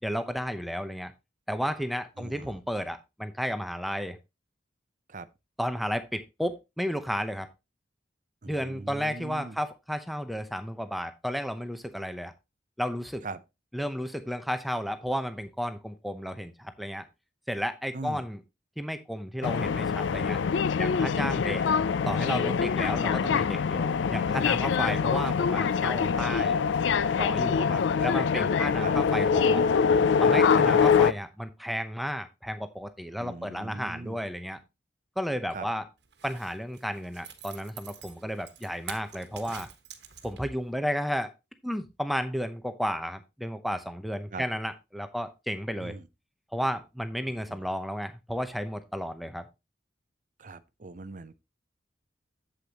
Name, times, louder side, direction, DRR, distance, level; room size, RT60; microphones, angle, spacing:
voice 1, 0.0-1.1 1.5-4.2 5.6-7.5 8.5-12.3 12.8-13.2 13.7-17.1 17.5-18.4 18.8-20.4 20.8-21.6 22.0-26.6 27.2-29.7 30.2-34.6 35.2-35.9 36.2-39.7 40.2-41.3 41.6-45.9 46.5-49.4, equal, ahead, 0.7 m, -33 dB
voice 2, 2.2-2.6 5.1-5.3 8.4-9.6 13.2-13.4 17.9-18.2 28.8-29.0 30.5-30.9 33.2-34.2 35.5-35.7 44.3-44.4 45.8-46.1 47.5-47.6 50.4-51.3, right 3 dB, 45° right, 0.6 m, -40 dB
sound 1, 19.4-31.1, left 6 dB, 90° left, 0.4 m, -24 dB
Zipper (clothing), 36.0-40.6 41.0-41.1, right 8 dB, 65° right, 1.3 m, -46 dB
8.4 x 7.9 x 2.9 m
head